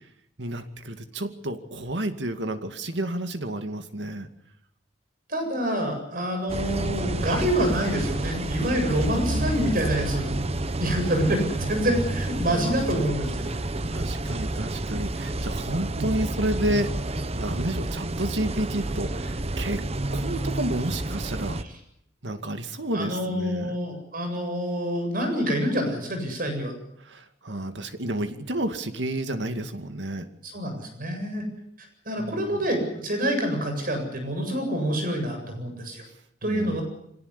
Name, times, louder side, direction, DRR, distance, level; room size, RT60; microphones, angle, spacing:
voice 1, 0.4-4.3 9.2-9.8 12.5-13.0 13.9-17.0 17.3-19.9 20.1-21.6 22.2-23.8 27.0-30.3 32.2-32.6 36.4-36.8, right 1 dB, 80° right, 8 dB, 2.4 m, -31 dB
voice 2, 5.3-10.4 10.8-13.5 15.9-16.1 21.6-21.7 22.9-26.7 30.4-31.5 32.1-36.0 36.4-36.8, equal, 50° right, 5 dB, 8.0 m, -27 dB
sound 1, 6.5-21.6, right 2 dB, 35° right, 1.0 m, -29 dB
25.0 x 18.0 x 10.0 m, 0.76 s
head